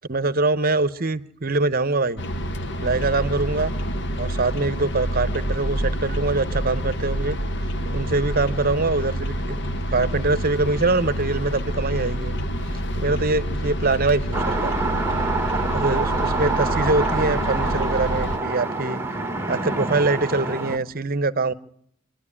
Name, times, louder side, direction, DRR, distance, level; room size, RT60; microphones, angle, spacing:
voice 1, 0.1-2.2 2.8-3.7 4.2-7.4 7.9-9.6 9.9-12.4 12.9-14.7 15.7-19.0 19.5-21.5, right 3 dB, 40° right, 0.9 m, -23 dB
sound 1, 2.2-18.4, equal, 55° left, 1.2 m, -27 dB
sound 2, 14.3-20.8, right 3 dB, 10° right, 1.3 m, -26 dB
27.0 x 11.5 x 9.9 m
head